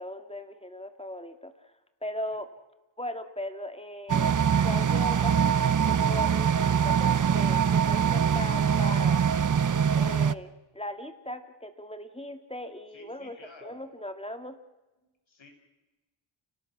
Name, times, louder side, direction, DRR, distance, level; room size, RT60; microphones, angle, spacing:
voice 1, 0.0-1.7 2.0-2.5 3.0-4.4 4.6-9.2 9.9-14.6, left 1 dB, 10° left, 7 dB, 2.1 m, -38 dB
sound 1, 4.1-10.3, right 7 dB, 40° right, 0.7 m, -23 dB
voice 2, 12.9-13.8 15.0-15.5, left 3 dB, 65° left, 3 dB, 6.5 m, -52 dB
30.0 x 18.5 x 6.1 m, 1.1 s
cardioid pair, 65°, 50 cm